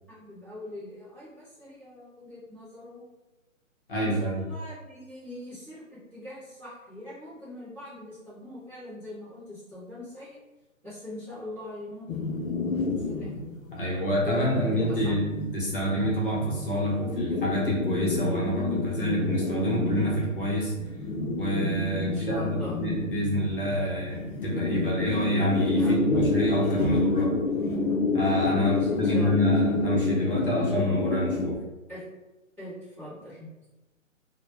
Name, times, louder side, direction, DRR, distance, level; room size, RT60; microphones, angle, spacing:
voice 1, 0.1-3.1 4.0-10.4 10.8-12.5 12.8-15.4 22.0-22.7 25.8-26.2 28.4-29.6 31.9-32.0 32.6-33.7, left 1 dB, 10° right, -16 dB, 0.6 m, -41 dB
voice 2, 3.9-4.4 13.7-15.2 15.5-20.7 21.4-27.3 28.1-31.6, equal, 45° left, -4 dB, 0.6 m, -27 dB
sound 1, 12.1-31.6, left 3 dB, 85° left, 0.5 m, -28 dB
2.1 x 2.1 x 2.9 m, 1.1 s
hypercardioid pair, 155°, 40 cm